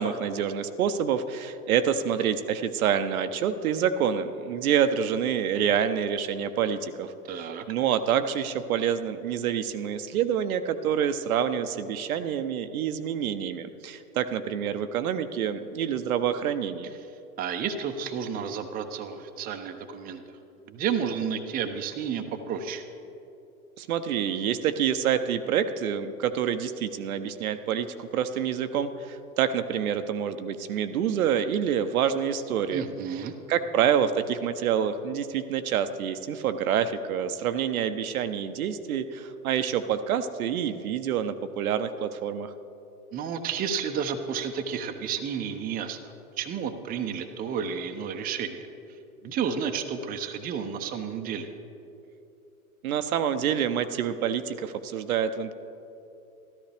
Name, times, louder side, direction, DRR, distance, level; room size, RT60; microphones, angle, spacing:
voice 1, 0.0-16.9 23.8-32.9 33.5-42.5 52.8-55.5, right 8 dB, 70° right, 10 dB, 0.8 m, -27 dB
voice 2, 7.3-7.6 17.4-20.2 20.7-22.8 32.7-33.3 43.1-46.0 46.4-48.6 49.2-51.5, right 7 dB, 20° right, 5 dB, 0.6 m, -31 dB
13.5 x 13.0 x 3.4 m, 2.8 s
hypercardioid pair, 105°, 45 cm